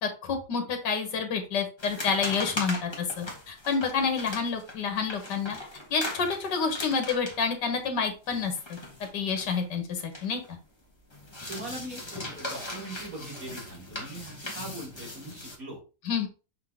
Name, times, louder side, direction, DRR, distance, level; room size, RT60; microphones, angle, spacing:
voice 1, 0.0-5.6 5.9-8.8 9.1-10.6 16.1-16.3, left 5 dB, 75° left, 5 dB, 1.9 m, -29 dB
sound 1, 1.8-10.5 10.8-15.6, left 1 dB, 15° left, 1.4 m, -39 dB
voice 2, 11.5-15.8, right 1 dB, 50° right, -3 dB, 3.5 m, -41 dB
6.5 x 3.9 x 3.7 m, 0.33 s
omnidirectional pair, 1.9 m